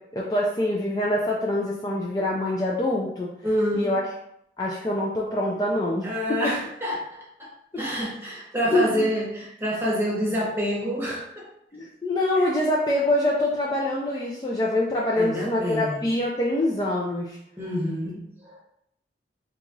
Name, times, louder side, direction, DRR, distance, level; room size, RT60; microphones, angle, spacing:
voice 1, 0.1-3.3 3.7-4.0 4.6-6.5 8.7-9.1 11.7-17.4, left 1 dB, 20° left, -4 dB, 0.3 m, -25 dB
voice 2, 3.4-4.0 6.0-7.5 7.8-11.5 12.4-12.5 15.2-16.0 17.6-18.6, equal, 10° right, -5 dB, 0.8 m, -27 dB
2.9 x 2.3 x 3.8 m, 0.75 s
head